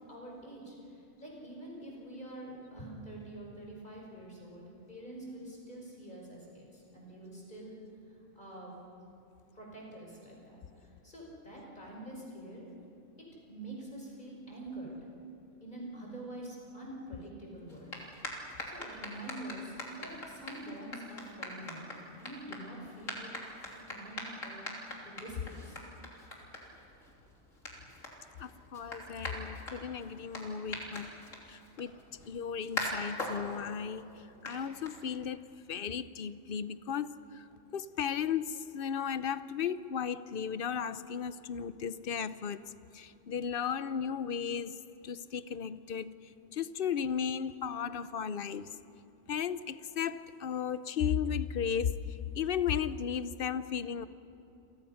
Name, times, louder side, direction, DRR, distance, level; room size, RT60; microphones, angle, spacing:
voice 1, 0.1-7.8 8.3-8.7 9.5-12.7 13.5-15.1 15.6-18.0 18.7-21.9 22.2-23.3 23.9-24.6 25.0-25.8, right 1 dB, 35° left, -2 dB, 5.5 m, -46 dB
sound 1, 17.7-35.4, left 1 dB, 90° left, 3.6 m, -43 dB
voice 2, 28.4-31.1 31.5-37.5 37.7-42.6 42.9-48.7 49.3-54.1, left 7 dB, 55° left, 14 dB, 0.8 m, -35 dB
29.5 x 24.0 x 5.7 m, 2.7 s
omnidirectional pair, 1.3 m